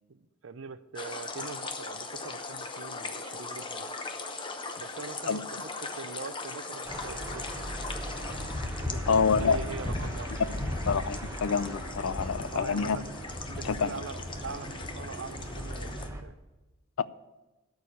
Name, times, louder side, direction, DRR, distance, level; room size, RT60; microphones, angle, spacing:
voice 1, 0.1-3.9 4.8-7.7 8.8-10.4 12.5-13.1 13.5-16.3, right 5 dB, 65° right, 0.6 m, -42 dB
sound 1, 1.0-16.1, left 3 dB, 25° left, 0.8 m, -38 dB
sound 2, 6.8-16.2, right 1 dB, 15° right, 1.0 m, -40 dB
voice 2, 9.1-9.6 10.9-13.0 13.7-13.9, left 5 dB, 80° left, 0.5 m, -27 dB
12.5 x 4.8 x 8.6 m
head